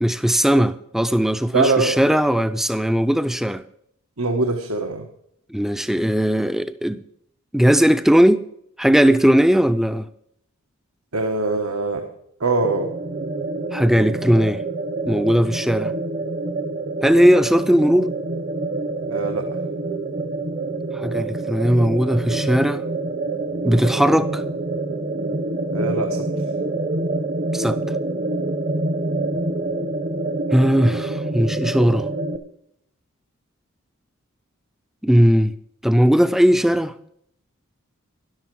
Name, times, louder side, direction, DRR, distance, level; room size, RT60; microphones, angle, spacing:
voice 1, 0.0-3.6 5.5-7.0 7.5-8.4 8.8-10.1 13.7-14.6 15.1-15.9 17.0-18.1 20.9-22.8 23.6-24.4 27.5-27.8 30.5-32.1 35.0-35.6 35.8-36.9, equal, ahead, 0.5 m, -18 dB
voice 2, 1.5-2.0 4.2-5.0 11.1-12.1 12.4-12.9 19.1-19.5 25.7-26.3, right 3 dB, 85° right, 1.4 m, -22 dB
sound 1, 12.6-32.4, right 2 dB, 40° right, 1.0 m, -26 dB
13.0 x 11.5 x 4.7 m
head